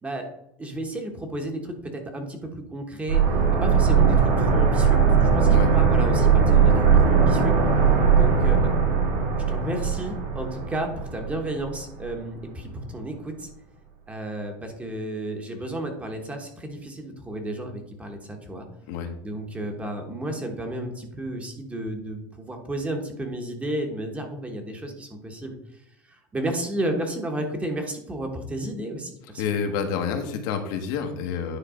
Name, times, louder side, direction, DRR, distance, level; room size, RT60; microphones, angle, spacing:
voice 1, 0.6-3.2 3.6-7.6 8.1-8.7 9.5-13.5 14.1-18.7 19.2-25.6 26.1-29.5, right 1 dB, 10° right, 3 dB, 1.1 m, -32 dB
sound 1, 3.1-11.8 12.1-12.2, right 6 dB, 75° right, 2.8 m, -19 dB
voice 2, 29.4-31.6, left 6 dB, 70° left, 5 dB, 1.3 m, -28 dB
9.9 x 3.3 x 5.0 m, 0.76 s
supercardioid pair, 155°, 11 cm